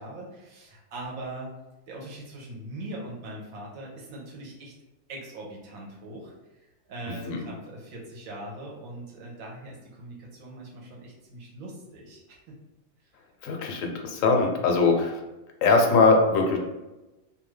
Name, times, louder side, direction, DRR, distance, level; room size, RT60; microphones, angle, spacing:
voice 1, 0.0-1.6 1.9-4.7 5.1-12.6, right 1 dB, 90° right, -3 dB, 1.2 m, -41 dB
voice 2, 13.4-15.2 15.6-16.6, left 3 dB, 75° left, 2 dB, 0.9 m, -21 dB
2.7 x 2.4 x 3.1 m, 1.1 s
omnidirectional pair, 1.4 m